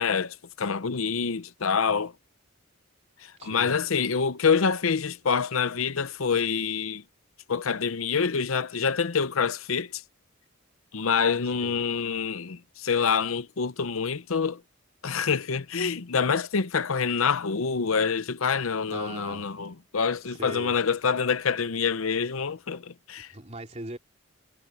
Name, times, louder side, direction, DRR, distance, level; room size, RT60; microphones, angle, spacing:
voice 1, 0.0-2.1 3.2-7.0 7.5-10.0 10.9-14.6 15.0-23.3, left 6 dB, 80° left, 0.7 m, -26 dB
voice 2, 3.4-3.8 11.6-11.8 18.9-19.5 20.3-20.8 23.3-24.0, right 2 dB, 30° right, 3.1 m, -40 dB
head